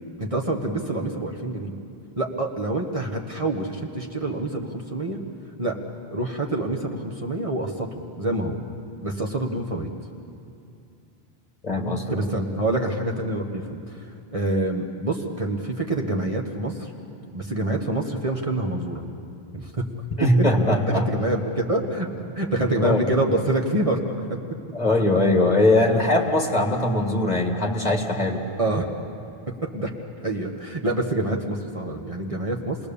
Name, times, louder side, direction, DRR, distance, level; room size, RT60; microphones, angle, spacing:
voice 1, 0.2-1.7 2.2-5.2 5.6-5.8 6.1-8.6 9.0-9.9 12.1-16.9 17.3-19.0 19.5-19.8 20.9-24.4 28.6-28.9 29.5-29.9 30.2-32.8, right 2 dB, 30° right, 0 dB, 1.5 m, -26 dB
voice 2, 11.6-12.0 20.2-21.0 22.8-23.0 24.7-28.4, left 1 dB, 40° left, 1 dB, 2.1 m, -20 dB
28.5 x 20.0 x 7.0 m, 2.6 s
omnidirectional pair, 1.1 m